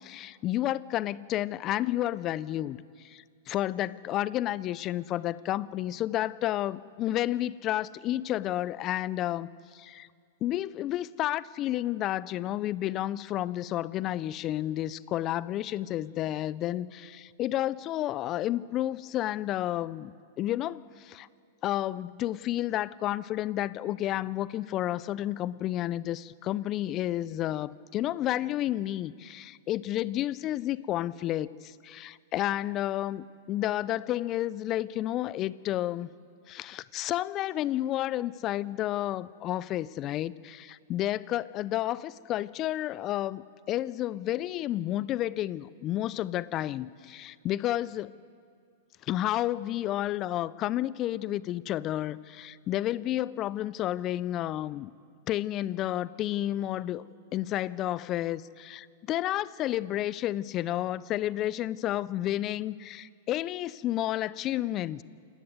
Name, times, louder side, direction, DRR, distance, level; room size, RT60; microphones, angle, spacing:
voice 1, 0.0-10.1 10.4-21.3 21.6-36.1 36.5-48.1 49.0-54.9 55.3-57.0 57.3-65.0, left 13 dB, 35° left, 19 dB, 0.7 m, -31 dB
28.0 x 18.5 x 8.1 m, 2.2 s
hypercardioid pair, 105°, 0 cm